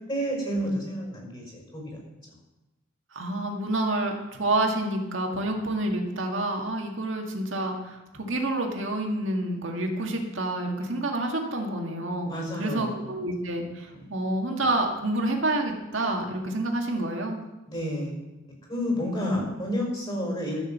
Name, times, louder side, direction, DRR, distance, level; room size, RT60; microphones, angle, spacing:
voice 1, 0.1-2.0 12.2-13.1 13.9-14.1 17.7-18.2 18.7-20.6, equal, 25° left, -1 dB, 5.0 m, -30 dB
voice 2, 3.1-12.3 12.6-17.4 19.1-19.5, right 1 dB, 65° right, 2 dB, 2.0 m, -28 dB
14.0 x 6.5 x 7.3 m, 1.0 s
head